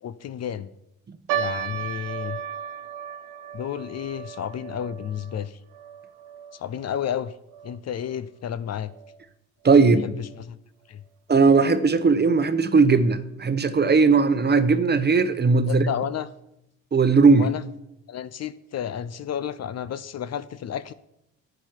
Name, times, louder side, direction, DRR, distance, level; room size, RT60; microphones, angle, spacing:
voice 1, 0.0-0.7 1.3-2.4 3.5-5.6 6.5-7.3 7.6-8.9 10.0-10.6 10.9-11.0 15.7-16.3 17.4-17.6 18.1-20.9, left 9 dB, 45° left, 0.6 m, -31 dB
sound 1, 1.3-7.8 8.0-8.1 8.9-9.2 9.8-9.9 10.2-10.4, right 9 dB, 85° right, 1.1 m, -35 dB
voice 2, 9.6-10.0 11.3-15.8 16.9-17.5, right 4 dB, 30° right, 0.9 m, -18 dB
10.0 x 8.9 x 4.6 m
supercardioid pair, 70°, 37 cm